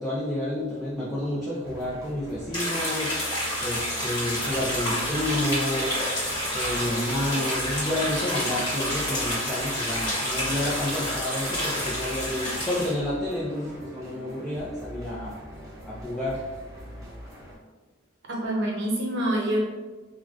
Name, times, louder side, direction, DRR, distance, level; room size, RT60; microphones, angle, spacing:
voice 1, 0.0-3.3 3.6-6.0 6.5-15.4 15.9-16.4, left 1 dB, ahead, -9 dB, 0.4 m, -30 dB
sound 1, 1.6-17.6, equal, 15° right, 0.9 m, -43 dB
sound 2, 2.5-12.9, equal, 25° left, 1.3 m, -29 dB
voice 2, 18.3-19.6, right 1 dB, 65° right, -2 dB, 0.7 m, -26 dB
3.6 x 2.2 x 2.4 m, 1.3 s
head